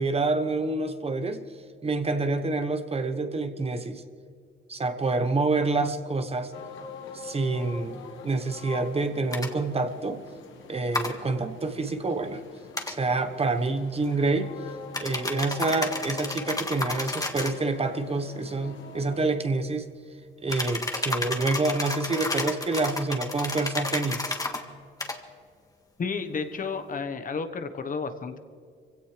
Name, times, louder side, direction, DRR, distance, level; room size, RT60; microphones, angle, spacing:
voice 1, 0.0-1.4 1.8-4.0 4.7-6.5 7.1-10.2 10.7-12.4 12.9-14.5 15.0-19.9 20.4-24.4, right 3 dB, 30° right, 8 dB, 1.2 m, -27 dB
sound 1, 6.5-19.3, left 5 dB, 75° left, 1.8 m, -44 dB
sound 2, 9.3-9.5 10.9-11.1 12.7-13.0 14.9-17.6 20.5-24.6 25.0-25.2, left 2 dB, 20° left, 1.8 m, -31 dB
voice 2, 26.0-28.4, left 5 dB, 45° left, 8 dB, 1.3 m, -32 dB
24.5 x 16.5 x 3.4 m, 2.3 s
cardioid pair, 90°, 20 cm